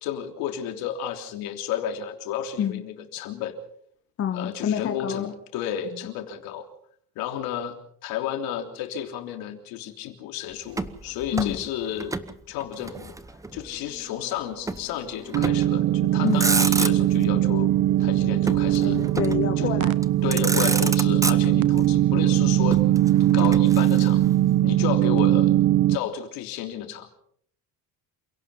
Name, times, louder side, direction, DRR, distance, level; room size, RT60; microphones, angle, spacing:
voice 1, 0.0-3.6 4.3-6.7 7.2-7.7 8.0-12.2 12.5-13.1 13.5-17.7 18.0-19.0 19.6-19.7 20.2-22.8 23.3-24.2 24.6-25.5 25.9-27.1, left 9 dB, 80° left, 5 dB, 3.4 m, -32 dB
voice 2, 2.6-3.1 4.2-5.3 11.3-11.6 16.2-16.4 18.8-19.9 20.3-20.5 21.6-21.7, left 8 dB, 40° left, 7 dB, 1.4 m, -28 dB
Motor vehicle (road), 10.7-12.3 12.6-13.7 14.7-14.9 15.3-15.8 16.2-17.3 18.5-19.5 20.0-20.1 20.3-21.8 22.7-24.3, right 3 dB, 10° right, 0.9 m, -29 dB
Singing, 13.4-18.3, right 2 dB, 40° right, 4.2 m, -50 dB
sound 1, 15.3-26.0, right 13 dB, 55° right, 1.0 m, -20 dB
28.0 x 17.5 x 5.6 m, 0.64 s
cardioid pair, 160°, 36 cm